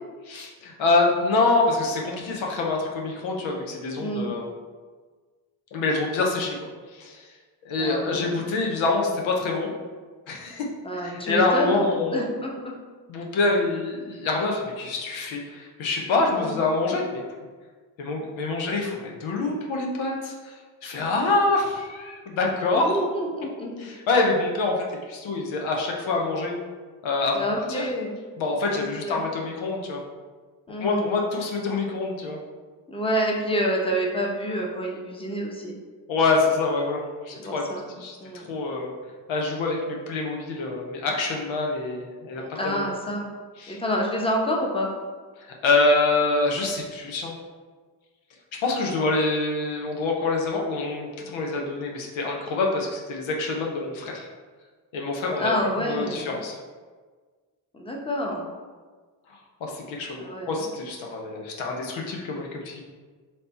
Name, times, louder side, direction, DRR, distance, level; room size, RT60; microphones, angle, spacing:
voice 1, 0.3-4.4 5.7-6.5 6.9-7.3 7.6-9.7 10.3-10.7 10.9-12.3 13.1-17.2 18.0-23.0 23.8-26.5 27.0-27.9 28.4-30.0 30.8-32.4 36.1-37.0 37.3-37.6 38.0-38.9 39.3-42.8 43.6-43.8 45.6-47.3 48.5-54.3 54.9-55.5 55.9-56.6 59.6-62.8, left 3 dB, 85° left, 0 dB, 0.7 m, -26 dB
voice 2, 3.9-4.3 7.8-8.4 10.8-11.8 12.1-12.7 16.3-16.6 22.7-23.8 27.3-28.2 28.7-29.2 30.7-31.1 32.9-35.7 37.3-37.8 38.2-38.4 42.3-43.3 43.7-44.9 55.4-56.4 57.7-58.5 60.2-60.7, equal, 10° left, -1 dB, 0.9 m, -28 dB
3.3 x 2.8 x 4.1 m, 1.4 s
supercardioid pair, 50°, 46 cm